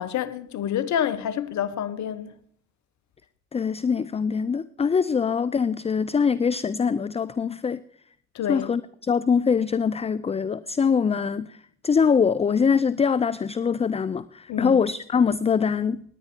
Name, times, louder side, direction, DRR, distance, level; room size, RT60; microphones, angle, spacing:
voice 1, 0.0-2.3 8.3-8.7 14.5-14.8, left 9 dB, 60° left, 1.1 m, -28 dB
voice 2, 3.5-7.8 8.5-16.0, left 6 dB, 20° left, 0.4 m, -23 dB
19.0 x 9.9 x 4.5 m
supercardioid pair, 60°, 31 cm